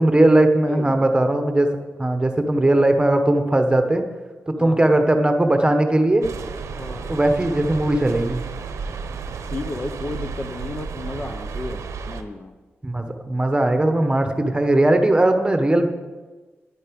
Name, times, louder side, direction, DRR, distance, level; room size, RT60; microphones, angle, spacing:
voice 1, 0.0-1.7 2.0-4.0 4.5-6.3 7.1-8.4 12.8-15.9, right 1 dB, 20° right, 6 dB, 1.2 m, -18 dB
voice 2, 0.7-1.1 4.6-4.8 6.7-7.1 9.5-12.5, left 2 dB, 30° left, 7 dB, 0.8 m, -33 dB
sound 1, 6.2-12.2, right 5 dB, 85° right, 0.8 m, -32 dB
10.5 x 9.4 x 5.3 m, 1.3 s
cardioid pair, 65°, 5 cm